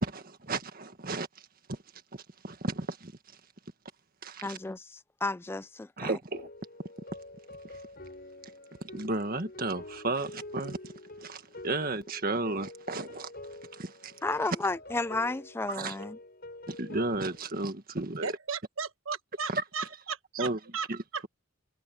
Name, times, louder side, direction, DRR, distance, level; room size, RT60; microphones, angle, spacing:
voice 1, 0.0-1.3 1.7-1.8 2.4-3.1 4.2-4.6 6.0-6.5 8.9-10.9 11.2-13.3 13.7-14.1 15.7-16.0 16.7-18.3 19.5-19.6 20.4-20.6 20.9-21.0, right 2 dB, 45° right, 1.8 m, -33 dB
voice 2, 4.4-6.2 14.2-16.2, left 2 dB, 10° left, 0.3 m, -33 dB
sound 1, 6.3-17.5, left 2 dB, 50° left, 5.6 m, -47 dB
voice 3, 18.2-20.9 21.1-21.2, right 5 dB, 75° right, 1.3 m, -36 dB
head